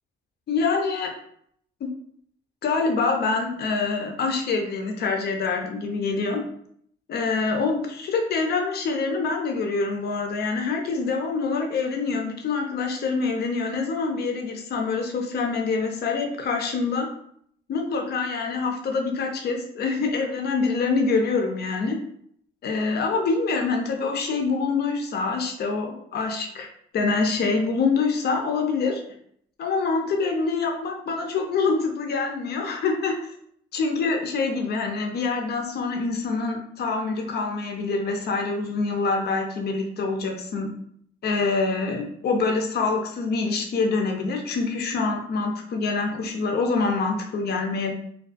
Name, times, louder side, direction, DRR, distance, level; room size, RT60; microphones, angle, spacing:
voice 1, 0.5-1.1 1.8-1.9 2.6-6.4 7.1-17.1 17.7-22.0 22.6-28.9 29.6-33.2 33.7-40.7 41.2-47.9, left 4 dB, 55° left, 3 dB, 0.5 m, -25 dB
2.3 x 2.3 x 2.4 m, 0.67 s
cardioid pair, 90°, 20 cm